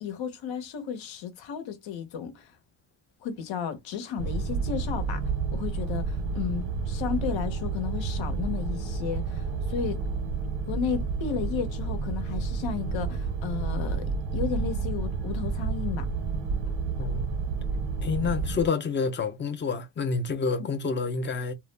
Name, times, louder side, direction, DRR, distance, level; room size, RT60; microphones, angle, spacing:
voice 1, 0.0-2.5 3.2-5.2 5.5-10.0 10.7-16.1 20.6-20.7, left 7 dB, 75° left, 0.8 m, -33 dB
sound 1, 4.2-18.7, right 4 dB, 85° right, 0.6 m, -30 dB
voice 2, 17.0-17.3 18.0-21.5, left 5 dB, 25° left, 0.4 m, -28 dB
2.3 x 2.0 x 3.1 m
cardioid pair, 125°, 46 cm